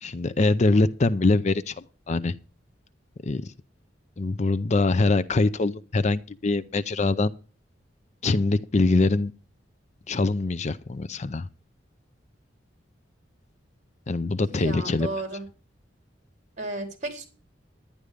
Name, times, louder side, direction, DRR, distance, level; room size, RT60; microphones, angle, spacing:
voice 1, 0.0-1.8 2.1-2.3 3.2-3.5 4.2-7.3 8.2-9.3 10.1-11.5 14.1-15.1, left 3 dB, 40° left, 0.5 m, -23 dB
voice 2, 14.5-15.4 16.6-17.3, right 2 dB, 40° right, 3.7 m, -33 dB
11.5 x 10.5 x 5.0 m
head